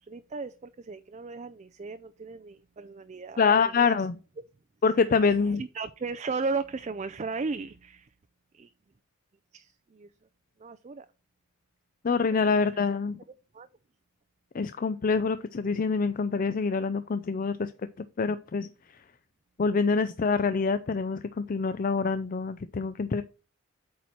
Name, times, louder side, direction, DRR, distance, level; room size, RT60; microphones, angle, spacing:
voice 1, 0.1-4.1 5.2-8.1 8.5-8.7 9.5-10.1 10.6-11.1 12.5-12.8 13.5-13.7, right 4 dB, 30° right, 11 dB, 0.4 m, -36 dB
voice 2, 3.4-4.2 4.8-5.6 12.0-13.2 14.5-17.7 18.2-18.7 19.6-23.2, left 5 dB, 40° left, 12 dB, 0.4 m, -26 dB
8.5 x 4.3 x 4.4 m, 0.33 s
head